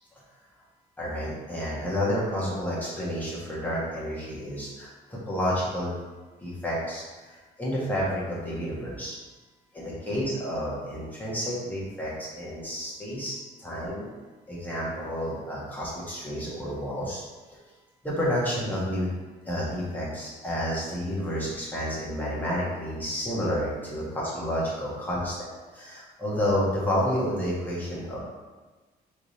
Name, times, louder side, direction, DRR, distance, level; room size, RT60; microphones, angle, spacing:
voice 1, 1.0-6.0 6.4-9.2 9.7-14.1 14.5-17.2 17.5-17.6 18.0-19.1 19.4-25.5 25.7-28.2, equal, 10° left, -7 dB, 1.5 m, -30 dB
3.7 x 3.4 x 4.1 m, 1.3 s
cardioid pair, 135°, 17 cm